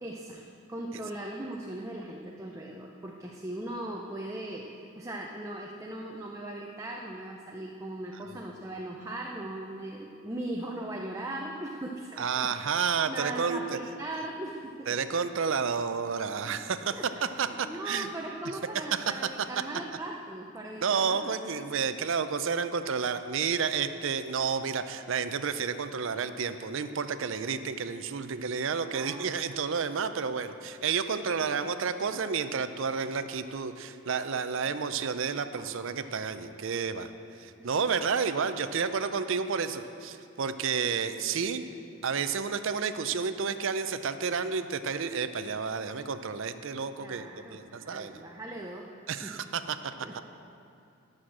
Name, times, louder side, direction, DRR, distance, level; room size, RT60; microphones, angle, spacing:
voice 1, 0.0-4.7 5.0-12.5 13.1-15.0 16.5-16.7 16.9-21.3 28.9-29.4 31.1-31.7 35.3-35.6 36.0-36.2 37.3-37.7 47.0-49.4 50.0-50.1, right 1 dB, 15° right, 0 dB, 0.5 m, -39 dB
voice 2, 12.2-13.8 14.9-17.0 17.4-18.1 19.1-19.2 20.8-37.1 37.4-41.6 42.0-48.2 49.1-50.2, right 6 dB, 60° right, 10 dB, 0.5 m, -31 dB
11.5 x 6.4 x 7.4 m, 2.5 s
head